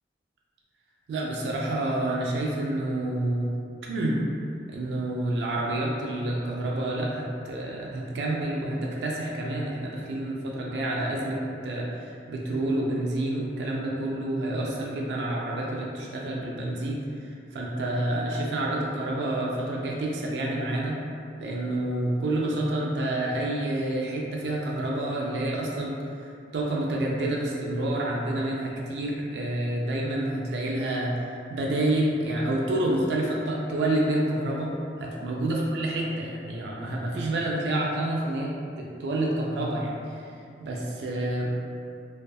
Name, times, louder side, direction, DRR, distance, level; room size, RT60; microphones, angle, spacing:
voice 1, 1.1-3.5 3.9-4.2 4.7-21.0 21.4-31.1 31.5-34.7 35.0-40.3 40.6-41.5, right 1 dB, 75° right, -3 dB, 0.3 m, -28 dB
2.6 x 2.3 x 2.3 m, 2.5 s
head